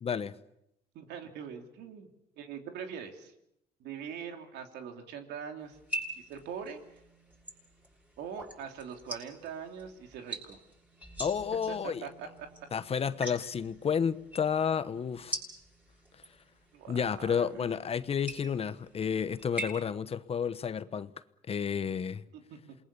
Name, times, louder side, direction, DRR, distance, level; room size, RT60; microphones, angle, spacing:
voice 1, 0.0-0.3 11.2-12.1 12.7-15.4 16.9-21.1 21.5-22.2, left 7 dB, 35° left, 1.1 m, -31 dB
voice 2, 0.9-2.1 2.4-3.3 3.8-5.8 6.1-6.8 8.2-10.6 11.8-12.5 16.7-17.7 22.3-22.8, right 7 dB, 80° right, 3.2 m, -42 dB
sound 1, 5.7-19.7, right 1 dB, 10° right, 7.9 m, -44 dB
28.0 x 21.0 x 7.0 m
cardioid pair, 110°, 17 cm